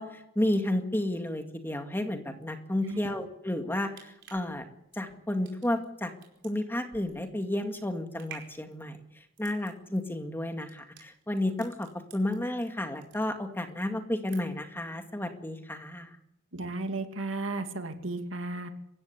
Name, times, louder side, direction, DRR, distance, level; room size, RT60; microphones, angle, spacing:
voice 1, 0.0-4.6 4.9-6.1 6.4-9.0 9.4-16.1, left 1 dB, 10° left, 6 dB, 2.1 m, -32 dB
sound 1, 3.7-12.7 13.0-13.7 14.0-14.7 15.1-15.2, right 8 dB, 60° right, 4.7 m, -52 dB
voice 2, 16.5-18.7, right 2 dB, 80° right, 6 dB, 2.4 m, -34 dB
26.0 x 15.5 x 8.3 m, 0.82 s
head